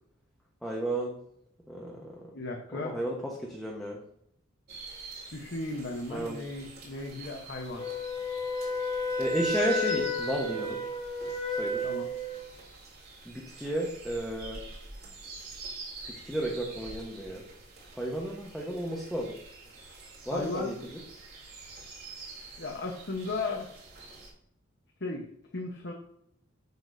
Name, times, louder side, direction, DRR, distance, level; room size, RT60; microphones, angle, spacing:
voice 1, 0.6-1.2 1.7-2.2 2.7-4.0 6.1-6.4 9.2-10.8 11.5-11.9 13.2-14.6 16.1-17.4 17.9-19.3 20.3-20.7, right 1 dB, ahead, -3 dB, 1.1 m, -33 dB
voice 2, 2.3-3.0 5.3-7.8 11.8-12.1 20.3-20.7 22.6-23.7 25.0-25.3 25.5-25.9, left 2 dB, 55° left, 1 dB, 1.1 m, -35 dB
sound 1, 4.7-24.3, right 3 dB, 50° right, 3.2 m, -47 dB
Wind instrument woodwind instrument, 7.8-12.5, left 1 dB, 30° left, 2.1 m, -32 dB
8.1 x 6.9 x 2.7 m, 0.71 s
head